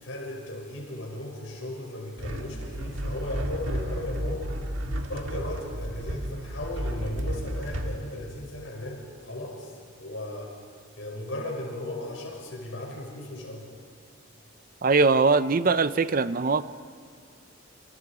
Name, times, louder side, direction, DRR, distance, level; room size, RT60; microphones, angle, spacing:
voice 1, 0.0-4.5 5.1-9.7 10.0-10.6 11.0-13.7, left 1 dB, 75° left, 0 dB, 6.1 m, -36 dB
sound 1, 2.2-8.0, equal, 80° right, 1.9 m, -32 dB
voice 2, 14.8-16.6, right 4 dB, 45° right, 14 dB, 0.6 m, -21 dB
29.5 x 26.5 x 5.0 m, 2.2 s
head